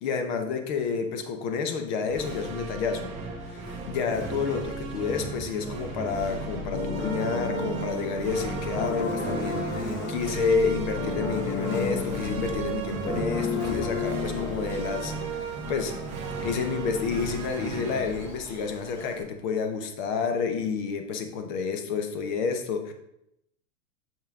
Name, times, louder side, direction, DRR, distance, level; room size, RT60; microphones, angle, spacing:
voice 1, 0.0-3.1 3.4-15.9 16.4-22.9, left 5 dB, 35° left, 6 dB, 0.8 m, -30 dB
sound 1, 2.1-19.5, right 4 dB, 15° right, 1.0 m, -36 dB
sound 2, 6.7-15.2, left 3 dB, 50° left, 1.8 m, -32 dB
Buzz, 6.9-19.2, left 1 dB, 70° left, 2.7 m, -43 dB
7.4 x 5.4 x 3.6 m, 0.80 s
supercardioid pair, 170°, 43 cm